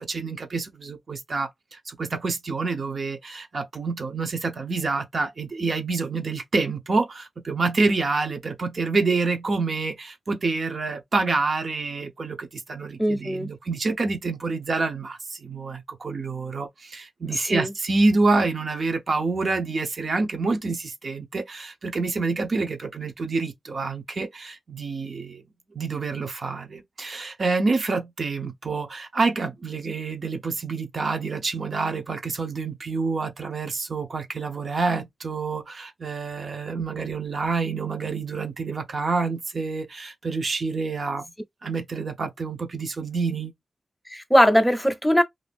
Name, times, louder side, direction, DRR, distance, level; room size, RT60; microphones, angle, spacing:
voice 1, 0.0-25.4 25.7-41.3 41.6-43.5, right 3 dB, 50° right, 0.6 m, -27 dB
voice 2, 13.0-13.5 17.3-17.7 44.1-45.2, equal, ahead, 0.6 m, -20 dB
2.6 x 2.3 x 3.4 m
wide cardioid pair, 170°, 0 cm